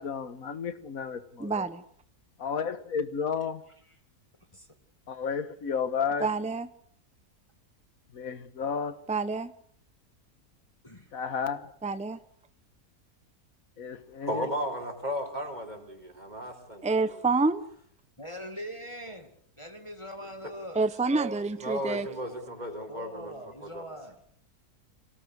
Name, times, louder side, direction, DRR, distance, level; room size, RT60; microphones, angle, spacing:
voice 1, 0.0-1.6 2.4-3.6 5.1-6.3 8.1-9.0 11.1-11.7 13.8-14.5, left 6 dB, 65° left, 12 dB, 1.9 m, -32 dB
voice 2, 1.4-1.8 6.2-6.7 9.1-9.5 11.8-12.2 16.8-17.7 20.7-22.1, right 3 dB, 5° right, 12 dB, 0.9 m, -28 dB
voice 3, 3.6-4.0 4.5-4.7 10.8-11.1 18.2-21.0 22.9-24.2, equal, 20° left, 4 dB, 2.3 m, -42 dB
voice 4, 14.3-17.2 20.4-20.5 21.6-23.3 23.6-23.8, equal, 25° right, 3 dB, 4.2 m, -35 dB
25.5 x 18.5 x 8.2 m, 0.63 s
omnidirectional pair, 1.6 m